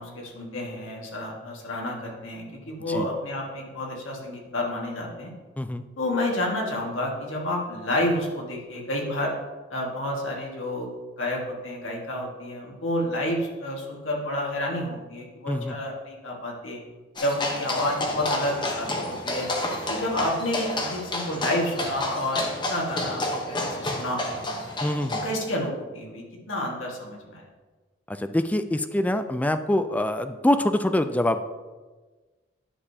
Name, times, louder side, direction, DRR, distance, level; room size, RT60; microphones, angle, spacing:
voice 1, 0.0-5.3 6.0-9.3 9.7-16.8 17.2-19.5 19.9-24.4 25.2-27.5, left 1 dB, 75° left, -1 dB, 1.7 m, -30 dB
sound 1, 17.2-25.4, left 1 dB, 25° left, 0.9 m, -30 dB
voice 2, 24.8-25.2 28.1-31.4, left 1 dB, 10° left, 9 dB, 0.3 m, -25 dB
9.8 x 6.6 x 2.8 m, 1.3 s
head